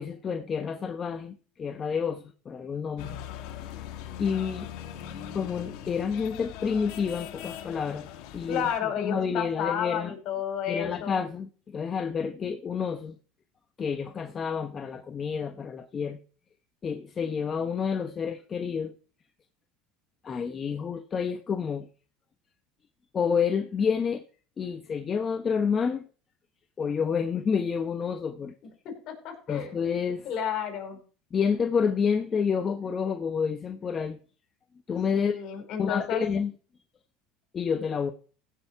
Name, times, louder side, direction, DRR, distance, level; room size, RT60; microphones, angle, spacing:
voice 1, 0.0-3.1 4.2-4.7 5.3-8.0 8.3-10.2 10.7-13.1 13.8-16.2 16.8-18.9 20.2-21.9 23.1-24.2 24.6-26.0 26.8-28.5 29.5-30.3 31.3-34.2 34.9-35.4 35.8-36.5 37.5-38.1, left 6 dB, 25° left, 0.9 m, -29 dB
sound 1, 3.0-8.8, left 10 dB, 65° left, 1.7 m, -40 dB
voice 2, 8.5-11.2 28.8-29.7 30.2-31.0 35.1-36.2, left 8 dB, 50° left, 4.9 m, -31 dB
16.0 x 6.6 x 4.8 m
supercardioid pair, 130°, 0 cm